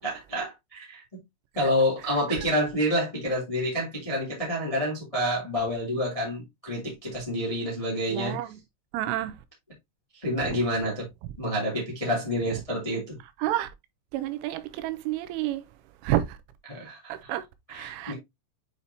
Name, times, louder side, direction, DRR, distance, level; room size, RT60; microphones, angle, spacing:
voice 1, 0.0-1.2 1.5-8.4 10.1-11.0 11.4-13.2 16.7-17.1 17.7-18.1, equal, 20° left, 1.0 m, -28 dB
voice 2, 2.1-2.5 8.1-8.6 8.9-9.4 10.4-10.6 11.2-11.4 13.4-13.7 14.1-15.7 16.0-16.4 17.1-18.1, right 13 dB, 90° right, 3.2 m, -30 dB
8.3 x 4.3 x 2.7 m
omnidirectional pair, 5.6 m